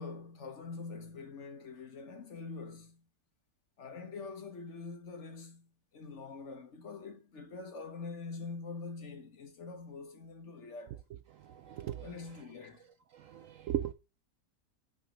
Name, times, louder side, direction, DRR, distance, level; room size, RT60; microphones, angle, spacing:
voice 1, 0.0-3.0 3.8-5.7 5.9-11.0 12.0-12.9, left 4 dB, 50° left, 1.2 m, -44 dB
voice 2, 11.3-12.4 13.1-13.9, right 11 dB, 70° right, 0.8 m, -38 dB
9.0 x 4.1 x 5.1 m
omnidirectional pair, 1.7 m